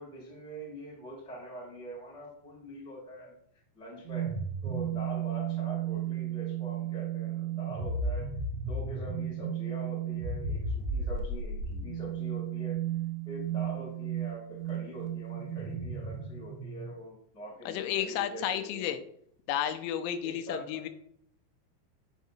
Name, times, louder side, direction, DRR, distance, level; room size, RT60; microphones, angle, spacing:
voice 1, 0.0-3.3 3.7-8.3 8.6-12.8 13.2-18.9 20.2-20.8, right 1 dB, ahead, -4 dB, 1.4 m, -44 dB
sound 1, 4.1-16.9, right 6 dB, 85° right, 3.4 m, -34 dB
voice 2, 17.7-19.0 19.5-20.9, left 10 dB, 85° left, 9 dB, 2.8 m, -32 dB
7.1 x 6.5 x 2.7 m, 0.66 s
omnidirectional pair, 5.2 m